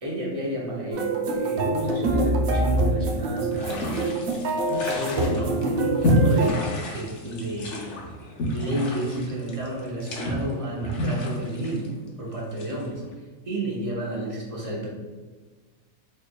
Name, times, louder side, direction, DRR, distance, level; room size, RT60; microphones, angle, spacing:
voice 1, 0.0-4.0 4.7-6.6 6.9-7.9 8.5-13.0 13.4-14.9, right 1 dB, 30° right, -4 dB, 0.7 m, -30 dB
sound 1, 0.9-6.5, right 2 dB, 75° right, 1.0 m, -25 dB
sound 2, 3.5-13.1, equal, 60° left, 0.9 m, -29 dB
3.6 x 3.2 x 2.2 m, 1.4 s
omnidirectional pair, 1.5 m